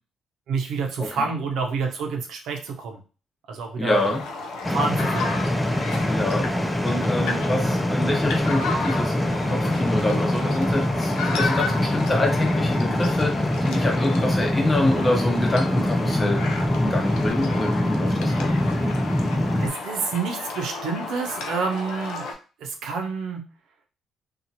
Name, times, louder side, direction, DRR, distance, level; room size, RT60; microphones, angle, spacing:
voice 1, 0.5-3.0 3.5-4.1 4.7-5.3 19.6-22.3 22.6-23.4, right 4 dB, 80° right, 2 dB, 0.7 m, -28 dB
voice 2, 3.8-4.2 6.1-18.6, left 1 dB, 20° left, 0 dB, 0.9 m, -26 dB
sound 1, 3.9-22.3, left 3 dB, 85° left, 0.5 m, -33 dB
sound 2, 4.6-19.7, left 1 dB, 5° left, 0.3 m, -24 dB
2.8 x 2.4 x 2.7 m, 0.35 s
cardioid pair, 90°, 0 cm